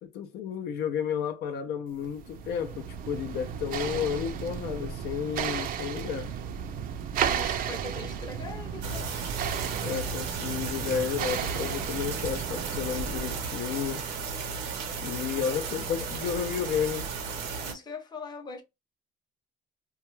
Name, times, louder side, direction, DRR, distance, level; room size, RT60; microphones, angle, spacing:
voice 1, 0.0-6.3 9.8-14.1 15.0-17.1, left 8 dB, 70° left, 0.5 m, -32 dB
sound 1, 2.0-13.5, right 8 dB, 60° right, 0.4 m, -34 dB
voice 2, 7.2-9.2 15.5-15.6 17.6-18.6, left 4 dB, 25° left, 0.6 m, -41 dB
sound 2, 8.8-17.7, right 5 dB, 90° right, 0.8 m, -35 dB
2.2 x 2.2 x 3.0 m
cardioid pair, 110°, 17 cm